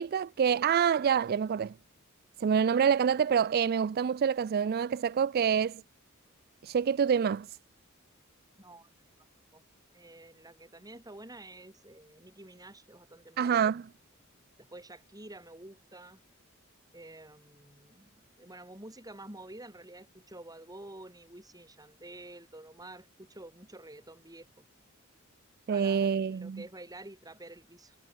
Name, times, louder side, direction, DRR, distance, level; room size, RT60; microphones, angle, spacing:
voice 1, 0.0-1.7 2.4-5.8 6.6-7.6 13.4-13.8 25.7-26.6, right 7 dB, 45° right, 0.3 m, -27 dB
voice 2, 8.6-8.9 9.5-9.6 9.9-13.7 14.6-16.2 16.9-18.1 18.4-24.6 25.7-28.0, right 1 dB, 20° right, 7.2 m, -49 dB
head